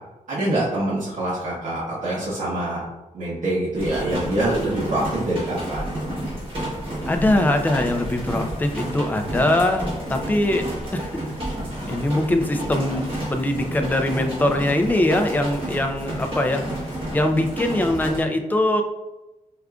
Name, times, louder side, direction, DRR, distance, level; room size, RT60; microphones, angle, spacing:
voice 1, 0.3-2.8 3.1-6.1, right 1 dB, 70° right, -9 dB, 0.9 m, -25 dB
sound 1, 3.7-18.2, right 1 dB, 40° right, 1.4 m, -30 dB
voice 2, 7.1-10.7 10.9-11.1 11.9-16.6 17.1-18.8, left 1 dB, 15° left, 5 dB, 0.3 m, -22 dB
4.8 x 2.4 x 2.3 m, 1.0 s
wide cardioid pair, 140°, 14 cm